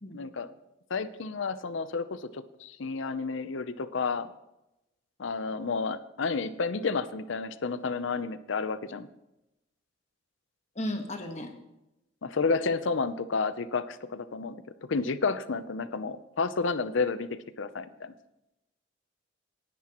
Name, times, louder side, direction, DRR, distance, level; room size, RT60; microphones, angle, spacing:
voice 1, 0.1-0.5 0.9-4.3 5.2-9.1 12.2-14.6 14.9-18.1, left 4 dB, 65° left, 14 dB, 0.6 m, -31 dB
voice 2, 10.7-11.5 15.8-16.0, left 1 dB, 35° left, 4 dB, 1.3 m, -35 dB
19.0 x 10.0 x 3.0 m, 0.93 s
head